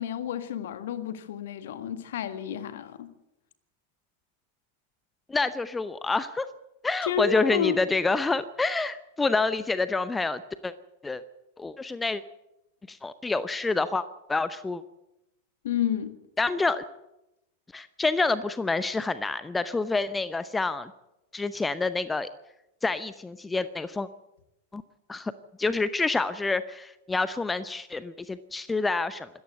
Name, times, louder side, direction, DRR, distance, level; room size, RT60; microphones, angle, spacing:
voice 1, 0.0-3.1 7.0-7.8 15.6-16.2, left 9 dB, 60° left, 1.7 m, -30 dB
voice 2, 5.3-6.5 6.8-10.7 11.0-11.2 11.6-12.2 12.9-14.8 16.4-16.8 17.7-20.9 21.3-22.3 22.8-24.1 24.7-24.8 25.1-25.3 25.6-29.3, left 3 dB, 10° left, 0.8 m, -27 dB
25.5 x 14.0 x 8.0 m
figure-of-eight pair, 90°, 0 cm